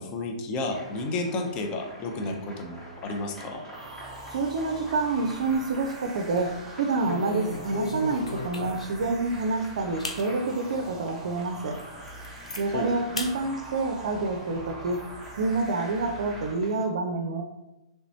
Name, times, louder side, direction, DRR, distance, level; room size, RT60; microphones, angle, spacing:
voice 1, 0.0-3.6 12.7-12.9, left 2 dB, 30° left, 3 dB, 0.5 m, -32 dB
sound 1, 0.7-16.8, equal, 15° left, 1.0 m, -48 dB
sound 2, 3.7-16.5, right 2 dB, 20° right, 0.8 m, -43 dB
voice 2, 4.3-11.8 12.6-15.0 15.4-17.4, right 3 dB, 65° right, 4 dB, 0.4 m, -28 dB
sound 3, 5.2-5.9 6.2-6.5 7.0-9.1 9.5-9.6 10.0-10.2 10.8-10.9 11.4-11.5 11.8-12.6 13.2-13.3 13.7-14.6, left 2 dB, 85° left, 0.5 m, -35 dB
3.3 x 3.0 x 2.7 m, 0.97 s
figure-of-eight pair, 115°, 3 cm